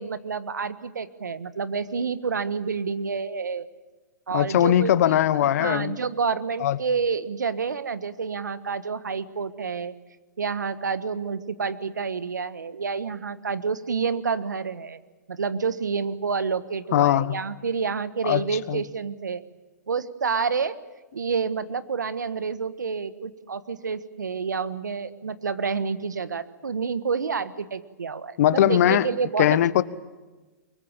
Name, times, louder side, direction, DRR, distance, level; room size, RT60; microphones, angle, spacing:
voice 1, 0.0-3.7 4.3-9.9 10.4-15.0 15.3-19.4 19.9-20.7 21.1-29.5, right 5 dB, 85° right, 1.5 m, -29 dB
voice 2, 4.3-6.0 6.6-6.8 16.9-17.4 18.2-18.8 28.4-29.1 29.4-29.8, left 12 dB, 60° left, 1.3 m, -20 dB
24.0 x 22.0 x 8.9 m
hypercardioid pair, 120°, 10 cm